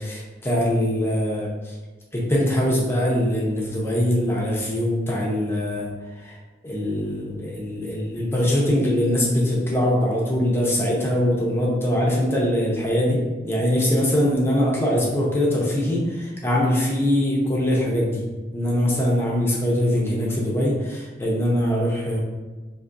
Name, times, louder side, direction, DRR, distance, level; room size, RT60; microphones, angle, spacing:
voice 1, 0.0-1.8 2.1-6.4 6.6-13.2 13.4-18.2 18.5-22.2, left 1 dB, 15° left, -5 dB, 0.5 m, -22 dB
3.6 x 2.6 x 2.5 m, 1.2 s
head